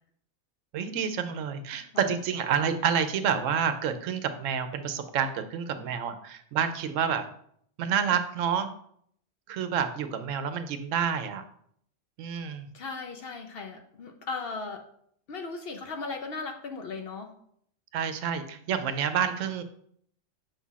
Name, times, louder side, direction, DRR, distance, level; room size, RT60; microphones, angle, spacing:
voice 1, 0.7-7.3 7.8-8.7 9.5-11.4 12.2-12.7 17.9-19.6, right 7 dB, 80° right, 9 dB, 0.9 m, -28 dB
voice 2, 1.7-2.1 12.7-14.8 15.3-17.3, left 4 dB, 55° left, 5 dB, 0.7 m, -37 dB
7.1 x 2.4 x 5.6 m, 0.67 s
omnidirectional pair, 1.3 m